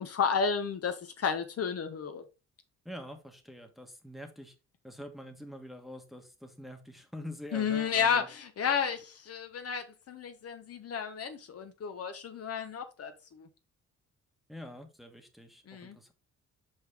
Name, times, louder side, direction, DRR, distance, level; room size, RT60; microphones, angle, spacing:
voice 1, 0.0-2.2 7.5-13.5 15.7-16.0, left 6 dB, 50° left, 1.0 m, -32 dB
voice 2, 2.8-4.5 4.8-8.3 14.5-16.1, equal, ahead, 1.3 m, -45 dB
5.5 x 5.3 x 3.5 m
cardioid pair, 90°, 30 cm